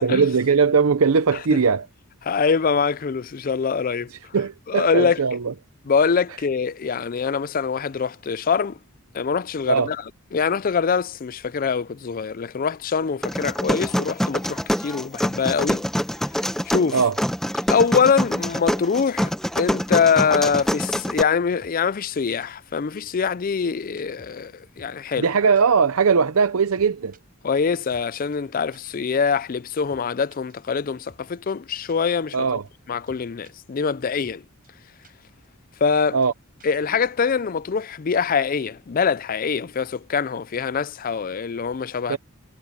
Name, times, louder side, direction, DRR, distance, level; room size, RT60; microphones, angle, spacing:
voice 1, 0.0-1.9 4.3-5.5 9.7-9.9 16.9-17.1 25.2-27.1 32.3-32.6 36.1-36.3 42.1-42.2, right 5 dB, 75° right, 0.6 m, -19 dB
voice 2, 2.3-4.4 4.7-5.2 5.9-8.8 9.1-10.0 10.3-15.8 16.7-17.0 17.7-25.3 27.4-32.6 32.9-34.4 35.8-36.2 36.6-42.2, left 6 dB, 40° left, 0.4 m, -24 dB
sound 1, 13.2-21.2, equal, ahead, 0.9 m, -25 dB
sound 2, 18.4-18.6 18.8-18.9 19.3-19.4 19.6-19.7 20.0-20.1 20.4-20.9 21.2-21.3 21.6-21.7 22.0-22.1 22.4-22.5 22.8-22.9 23.2-23.3 23.6-23.7 24.0-24.9 25.2-25.3 25.5-25.6 25.9-26.0 26.3-26.4 26.7-27.2 27.5-27.6 27.9-28.1 28.3-28.4 28.7-28.8 29.1-29.2 29.5-29.6 29.9-30.0 30.3-31.2 31.5-31.6 31.9-32.0 32.3-32.4 32.6-32.7 33.1-33.5 33.9-34.0 34.2-34.4 34.6-34.7 35.0-35.1 35.4-35.5 35.8-35.9 36.2-36.3 36.6-36.8, right 2 dB, 40° right, 6.7 m, -52 dB
head